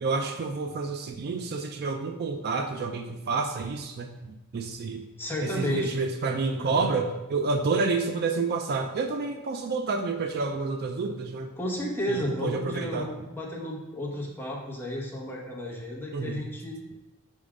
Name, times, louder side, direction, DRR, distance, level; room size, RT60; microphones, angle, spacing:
voice 1, 0.0-5.0 5.4-11.5 12.1-13.1 16.1-16.4, right 4 dB, 45° right, 5 dB, 0.4 m, -29 dB
voice 2, 5.2-6.0 6.6-6.9 11.6-16.8, left 1 dB, 10° left, -4 dB, 1.2 m, -32 dB
5.3 x 3.6 x 5.0 m, 1.0 s
head